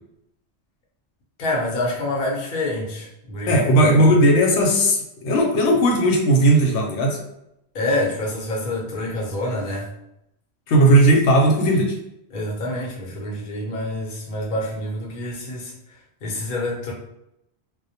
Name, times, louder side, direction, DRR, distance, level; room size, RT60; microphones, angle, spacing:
voice 1, 1.4-4.1 7.7-9.9 12.3-15.7 16.2-16.9, left 1 dB, 55° left, -3 dB, 0.8 m, -27 dB
voice 2, 3.5-7.2 10.7-12.0, right 1 dB, 85° left, 0 dB, 0.9 m, -16 dB
2.1 x 2.1 x 2.7 m, 0.81 s
omnidirectional pair, 1.2 m